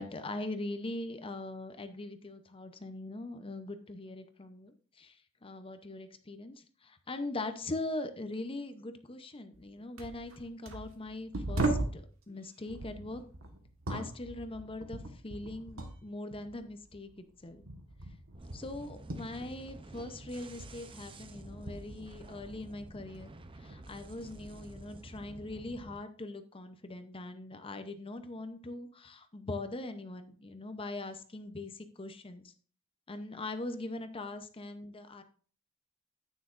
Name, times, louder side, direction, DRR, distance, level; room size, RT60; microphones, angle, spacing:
voice 1, 0.0-13.2 13.9-17.1 17.4-17.6 18.5-23.3 23.6-32.5 33.1-35.2, left 2 dB, 25° left, 8 dB, 0.7 m, -41 dB
sound 1, 9.5-9.7 10.0-12.1 12.7-16.0 16.3-20.1 20.4-22.7 23.2-23.9 24.7-24.9, right 2 dB, 75° right, 1.5 m, -39 dB
sound 2, 18.3-26.0, right 2 dB, 25° right, 0.6 m, -50 dB
9.8 x 9.2 x 2.5 m, 0.43 s
head